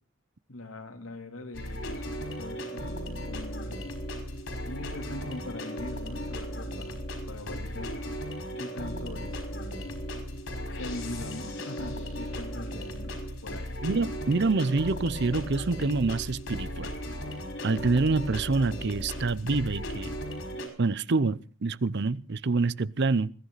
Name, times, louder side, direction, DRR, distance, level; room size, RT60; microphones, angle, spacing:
voice 1, 0.5-3.9 4.7-8.0 8.6-9.9 10.7-13.8, left 1 dB, 85° left, 3.6 m, -42 dB
sound 1, 1.5-20.7, equal, 70° left, 5.3 m, -36 dB
voice 2, 13.8-16.9 17.6-20.1 20.8-23.3, right 3 dB, 55° right, 0.7 m, -26 dB
22.0 x 14.5 x 4.1 m
head